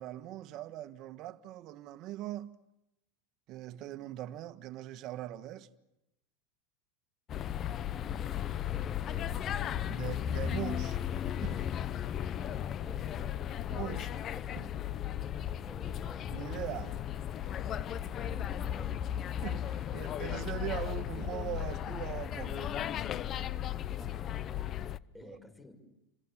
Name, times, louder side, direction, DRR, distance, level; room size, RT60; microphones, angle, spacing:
voice 1, 0.0-2.5 3.5-5.7 9.9-11.0 11.4-11.7 13.7-14.1 14.5-14.7 16.3-17.0 19.4-22.8 25.2-25.4, right 14 dB, 50° right, 1.5 m, -41 dB
sound 1, 7.3-25.0, left 10 dB, 40° left, 0.9 m, -35 dB
voice 2, 7.9-9.5 12.8-13.3 15.4-16.5 18.0-19.1 23.9-24.8 25.1-25.7, left 1 dB, 10° left, 6.4 m, -52 dB
30.0 x 26.5 x 7.4 m
hypercardioid pair, 100°, 0 cm